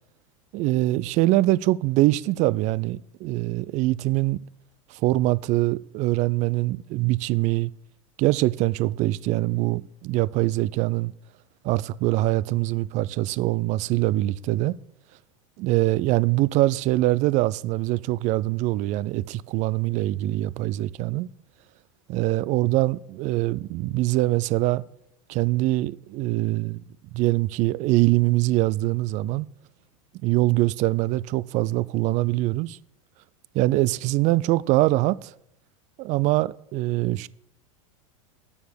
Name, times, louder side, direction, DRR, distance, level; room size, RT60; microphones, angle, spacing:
voice 1, 0.5-4.4 4.9-7.7 8.2-11.1 11.6-14.8 15.6-21.3 22.1-24.8 25.3-26.8 27.1-29.5 30.2-32.8 33.5-35.3 36.0-37.3, right 18 dB, 45° right, 0.5 m, -23 dB
9.4 x 7.1 x 8.5 m
hypercardioid pair, 110°, 18 cm